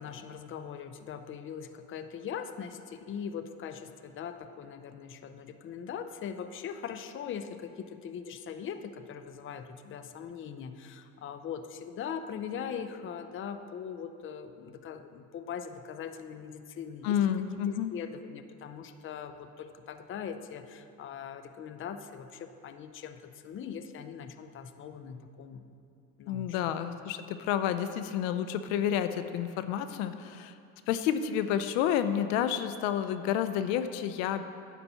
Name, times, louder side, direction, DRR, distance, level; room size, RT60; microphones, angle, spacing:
voice 1, 0.0-25.6 26.2-26.6, left 7 dB, 35° left, 9 dB, 0.5 m, -41 dB
voice 2, 17.0-17.9 26.3-30.5 30.9-34.4, left 9 dB, 90° left, 10 dB, 0.5 m, -30 dB
9.9 x 4.2 x 6.7 m, 2.5 s
supercardioid pair, 100°, 38 cm